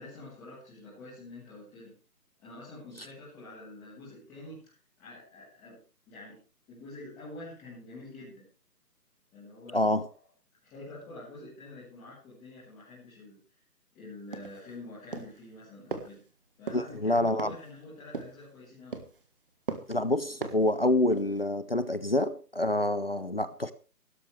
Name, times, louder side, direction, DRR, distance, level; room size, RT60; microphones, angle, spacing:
voice 1, 0.0-2.0 2.4-6.4 6.7-8.5 9.3-9.8 10.6-13.4 13.9-16.2 16.6-19.0, left 2 dB, 5° left, 1.7 m, -47 dB
voice 2, 9.7-10.1 16.7-17.6 19.9-23.7, left 1 dB, 40° left, 0.6 m, -27 dB
sound 1, 14.3-14.7 15.1-15.4 15.9-16.1 16.7-16.9 17.4-17.7 18.1-18.4 18.9-19.2 19.7-20.0 20.4-20.7 21.1-21.4, right 4 dB, 35° right, 1.6 m, -38 dB
17.5 x 13.0 x 3.4 m
figure-of-eight pair, 165°, 48 cm